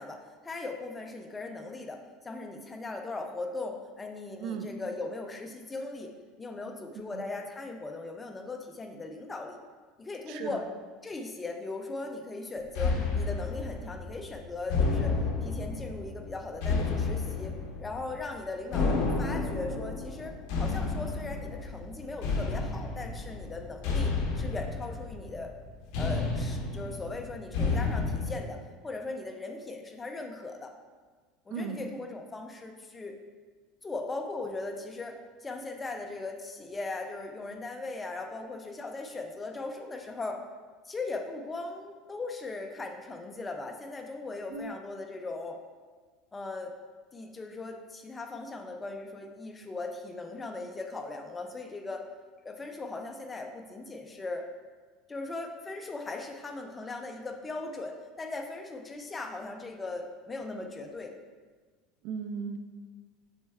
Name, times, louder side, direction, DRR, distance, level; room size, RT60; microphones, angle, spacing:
voice 1, 0.0-2.0 2.2-6.1 6.4-9.6 10.0-10.6 11.0-17.5 17.8-20.3 20.6-25.5 26.0-28.6 28.8-30.7 31.5-33.2 33.8-35.2 35.4-40.4 40.8-45.6 46.3-46.7 47.1-52.0 52.4-54.4 55.1-61.1, left 3 dB, 15° left, 4 dB, 0.5 m, -38 dB
voice 2, 10.3-10.6 31.5-31.9 44.5-44.8 62.0-62.6, right 6 dB, 60° right, 7 dB, 0.5 m, -36 dB
sound 1, 12.8-28.4, left 4 dB, 60° left, 1.0 m, -31 dB
6.3 x 4.3 x 3.5 m, 1.4 s
cardioid pair, 155°, 0 cm